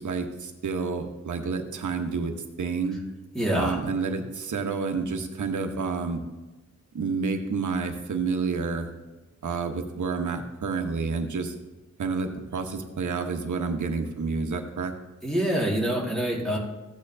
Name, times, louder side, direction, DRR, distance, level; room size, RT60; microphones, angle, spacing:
voice 1, 0.0-3.0 3.5-6.2 6.9-8.9 9.4-11.5 12.0-14.9, right 4 dB, 80° right, 5 dB, 1.0 m, -29 dB
voice 2, 3.3-3.8 15.2-16.6, right 1 dB, ahead, -5 dB, 1.9 m, -25 dB
14.5 x 8.8 x 2.7 m, 1.1 s
wide cardioid pair, 150°, 29 cm